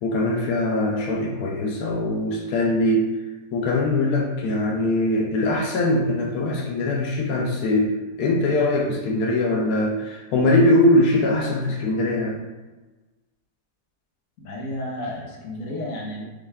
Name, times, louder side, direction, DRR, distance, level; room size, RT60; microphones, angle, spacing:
voice 1, 0.0-3.1 3.5-7.9 8.2-12.4, left 1 dB, 90° left, 0 dB, 1.2 m, -21 dB
voice 2, 14.4-16.2, left 1 dB, 65° left, -3 dB, 1.3 m, -32 dB
5.4 x 2.3 x 3.3 m, 1.2 s
omnidirectional pair, 1.6 m